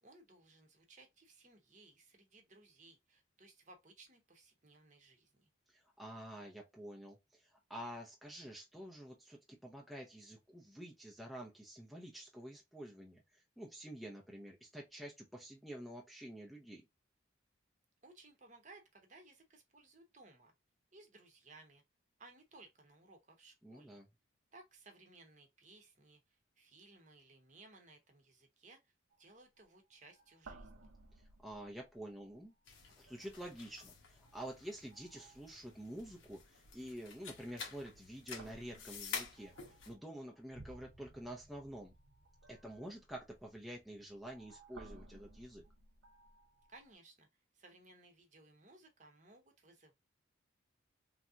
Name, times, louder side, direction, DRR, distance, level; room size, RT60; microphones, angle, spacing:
voice 1, 0.0-5.5 18.0-20.5 20.9-21.8 22.2-24.0 24.5-28.9 29.2-30.9 46.7-47.3 47.5-49.9, right 2 dB, 35° right, 0.9 m, -61 dB
voice 2, 5.7-16.8 23.6-24.1 31.2-32.5 33.0-39.5 39.9-41.9 42.5-45.6, right 1 dB, ahead, 0.5 m, -49 dB
sound 1, 29.1-29.3 29.6-29.8 30.0-32.4 32.9-33.4 34.3-34.5 34.9-35.7 37.3-37.7 38.3-46.9, right 2 dB, 90° right, 0.8 m, -59 dB
sound 2, 32.7-39.9, left 5 dB, 80° left, 1.0 m, -49 dB
3.2 x 2.7 x 2.4 m
head